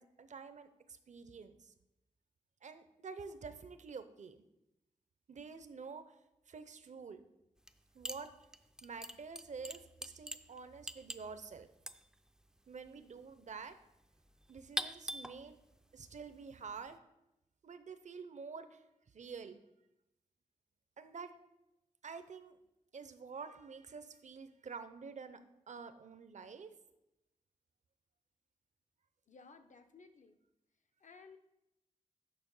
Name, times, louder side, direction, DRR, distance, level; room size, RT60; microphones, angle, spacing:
voice 1, 0.0-1.7 2.6-4.4 5.3-6.1 6.5-7.2 7.9-8.3 8.8-11.7 12.7-13.8 14.5-15.6 15.9-17.0 17.6-18.8 19.1-19.6 21.0-21.4 22.0-22.6 22.9-25.4 25.7-26.7, right 5 dB, 65° right, 10 dB, 0.7 m, -48 dB
sound 1, 7.6-7.8 8.0-17.0, right 1 dB, 5° right, 0.4 m, -45 dB
voice 2, 29.3-30.4 31.0-31.4, left 4 dB, 70° left, 7 dB, 0.8 m, -57 dB
6.9 x 5.8 x 5.4 m, 0.88 s
wide cardioid pair, 80°, 13 cm